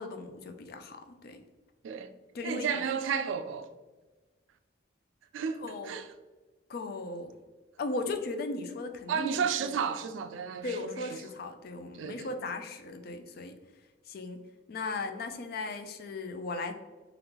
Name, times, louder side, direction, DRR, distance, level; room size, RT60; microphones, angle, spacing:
voice 1, 0.0-1.4 2.3-2.7 5.6-5.9 6.7-7.3 7.8-9.3 9.6-9.7 10.6-13.5 14.1-14.4 14.7-16.7, left 3 dB, 50° left, 0.3 m, -37 dB
voice 2, 2.4-3.7 5.3-6.1 9.1-11.2 11.9-12.3, right 6 dB, 80° right, 0.3 m, -33 dB
3.5 x 2.4 x 2.9 m
head